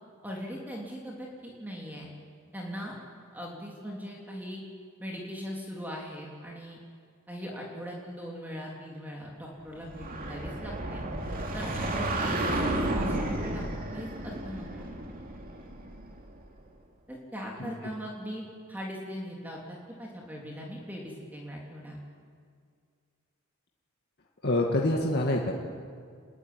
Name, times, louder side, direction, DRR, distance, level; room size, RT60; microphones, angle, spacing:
voice 1, 0.2-2.1 2.5-2.9 3.3-4.6 5.0-6.8 7.3-11.0 11.5-14.9 17.1-22.0, equal, 10° right, -2 dB, 3.3 m, -40 dB
sound 1, 9.8-16.4, right 1 dB, 40° right, 2.8 m, -32 dB
voice 2, 24.4-25.5, left 1 dB, 50° left, -1 dB, 2.1 m, -26 dB
26.5 x 21.0 x 9.7 m, 2.2 s
head